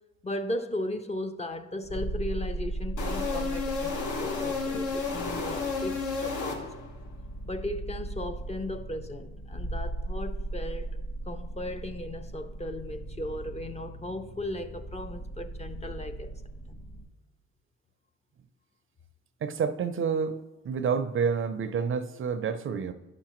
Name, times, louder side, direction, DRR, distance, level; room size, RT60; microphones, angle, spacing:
voice 1, 0.2-6.7 7.4-10.9 11.3-16.3 16.7-16.8, left 1 dB, 20° left, 0.5 m, -36 dB
sound 1, 1.8-17.0, right 2 dB, 35° left, 1.7 m, -38 dB
sound 2, 3.0-7.0, left 4 dB, 80° left, 1.1 m, -32 dB
voice 2, 19.4-20.4 20.6-22.9, right 6 dB, 45° right, 0.5 m, -28 dB
9.8 x 5.8 x 3.0 m
cardioid pair, 90°, 30 cm